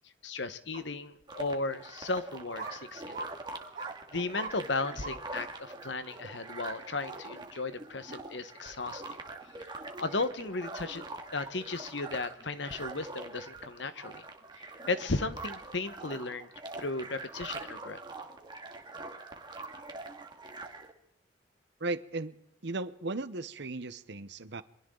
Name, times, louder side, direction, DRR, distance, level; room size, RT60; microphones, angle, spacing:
voice 1, 0.2-3.2 4.1-9.0 9.7-11.0 11.3-14.2 14.6-16.5 16.8-18.0, left 3 dB, 65° left, 11 dB, 1.3 m, -35 dB
sound 1, 0.7-0.8 1.6-1.7 2.6-2.8 3.1-3.3 3.8-3.9 4.3-4.5 5.0-5.2 5.7-5.8, right 3 dB, 45° right, 2.6 m, -39 dB
sound 2, 1.3-20.9, right 3 dB, 25° right, 2.1 m, -44 dB
voice 2, 21.8-22.3 22.6-24.6, right 2 dB, 65° right, 13 dB, 1.0 m, -36 dB
28.5 x 23.5 x 3.9 m, 0.71 s
head